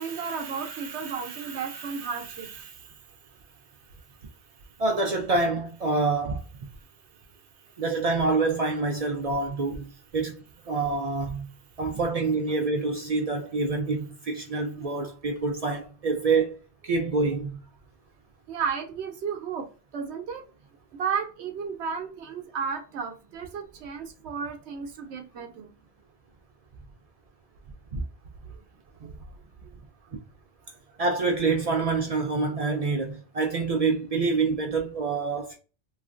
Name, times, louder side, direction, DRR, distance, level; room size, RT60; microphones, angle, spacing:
voice 1, 0.0-2.9 18.5-19.7 19.9-20.4 21.0-25.7 29.0-29.2, right 6 dB, 80° right, 0.9 m, -33 dB
voice 2, 4.8-6.4 7.8-9.8 10.1-10.3 10.7-11.5 11.8-16.6 16.8-17.6 27.9-28.0 30.1-30.2 31.0-35.6, right 3 dB, 55° right, 0.4 m, -26 dB
3.1 x 2.4 x 2.4 m
omnidirectional pair, 1.1 m